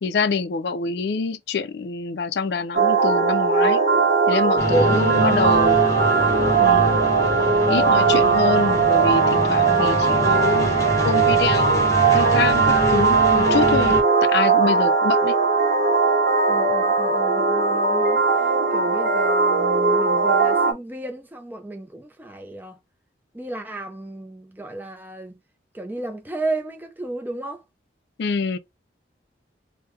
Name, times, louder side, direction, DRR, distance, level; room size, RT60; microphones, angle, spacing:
voice 1, 0.0-3.8 4.3-5.8 6.6-7.0 7.7-11.9 12.1-15.4 28.2-28.6, left 5 dB, 65° left, 0.4 m, -26 dB
sound 1, 2.7-20.7, right 4 dB, 55° right, 0.7 m, -19 dB
sound 2, 4.6-14.0, right 1 dB, 20° left, 0.7 m, -26 dB
voice 2, 4.7-5.2 16.5-18.2 18.7-22.8 23.3-25.4 25.7-27.6, right 1 dB, 10° right, 0.4 m, -32 dB
3.3 x 2.1 x 3.1 m
head